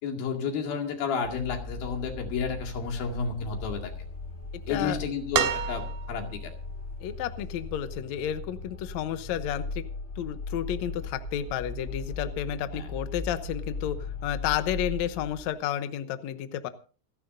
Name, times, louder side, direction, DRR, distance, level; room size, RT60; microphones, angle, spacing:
voice 1, 0.0-3.9 4.7-6.5 12.7-12.9, left 5 dB, 65° left, 3 dB, 4.0 m, -31 dB
sound 1, 1.2-15.5, left 3 dB, 45° left, 0.8 m, -38 dB
sound 2, 5.3-6.4 7.9-8.0, right 9 dB, 75° right, 3.2 m, -28 dB
voice 2, 7.0-9.8 10.2-16.7, left 10 dB, 85° left, 11 dB, 1.5 m, -31 dB
28.0 x 10.0 x 2.7 m, 0.38 s
omnidirectional pair, 4.6 m